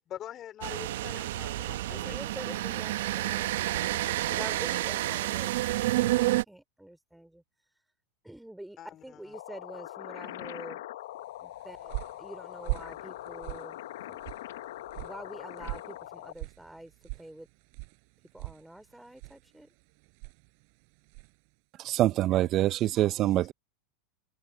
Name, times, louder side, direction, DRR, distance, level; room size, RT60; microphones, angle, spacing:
voice 1, 0.1-2.2 2.5-2.6 8.8-9.0, left 11 dB, 35° left, 3.5 m, -43 dB
sound 1, 0.6-6.4, right 16 dB, 75° right, 0.9 m, -29 dB
voice 2, 1.8-7.4 8.2-10.8 11.4-13.8 14.1-14.2 14.9-17.5 18.3-19.7, right 1 dB, 5° right, 3.3 m, -46 dB
sound 2, 9.3-16.3, left 14 dB, 75° left, 0.9 m, -42 dB
sound 3, 11.4-21.5, right 39 dB, 60° right, 4.8 m, -42 dB
voice 3, 21.8-23.5, right 14 dB, 40° right, 0.7 m, -25 dB
hypercardioid pair, 110°, 0 cm